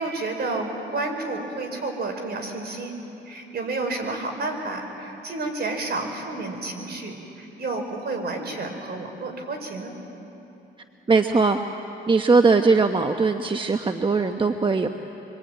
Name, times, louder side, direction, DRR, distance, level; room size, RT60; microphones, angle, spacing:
voice 1, 0.0-2.9 3.2-9.9, right 2 dB, 55° right, 3 dB, 5.1 m, -30 dB
voice 2, 11.1-11.6 12.1-14.9, right 4 dB, 25° right, 6 dB, 1.0 m, -20 dB
25.5 x 24.5 x 9.2 m, 3.0 s
cardioid pair, 90°, 20 cm